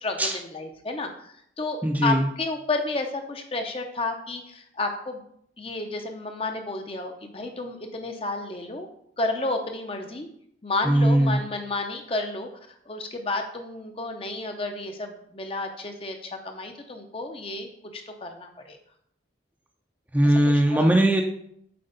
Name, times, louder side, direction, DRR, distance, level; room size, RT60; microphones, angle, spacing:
voice 1, 0.0-5.2 5.6-8.9 9.2-10.3 10.6-12.5 12.9-18.8 20.7-20.9, left 2 dB, 30° left, 5 dB, 0.7 m, -31 dB
voice 2, 1.8-2.3 10.8-11.4 20.1-21.2, right 1 dB, 10° right, 3 dB, 0.6 m, -20 dB
7.7 x 4.6 x 4.0 m, 0.69 s
head